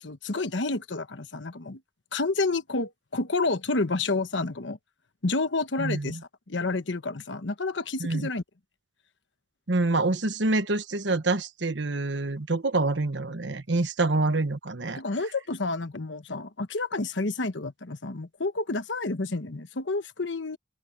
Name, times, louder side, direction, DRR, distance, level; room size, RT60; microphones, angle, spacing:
voice 1, 0.0-1.8 2.1-4.8 5.2-6.2 6.5-8.4 15.0-20.6, left 3 dB, 80° left, 1.2 m, -29 dB
voice 2, 5.8-6.2 8.0-8.3 9.7-15.0, right 2 dB, 75° right, 1.2 m, -26 dB
open air
head